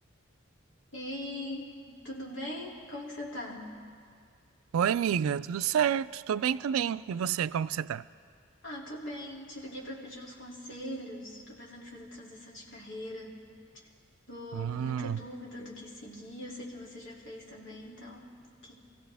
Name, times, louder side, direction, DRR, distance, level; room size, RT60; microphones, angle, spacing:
voice 1, 0.9-3.7 8.6-13.4 14.3-18.3 18.6-18.9, left 1 dB, 60° left, -3 dB, 2.7 m, -42 dB
voice 2, 4.7-8.1 14.5-15.2, right 8 dB, 90° right, 16 dB, 0.3 m, -29 dB
25.0 x 16.0 x 3.4 m, 2.2 s
head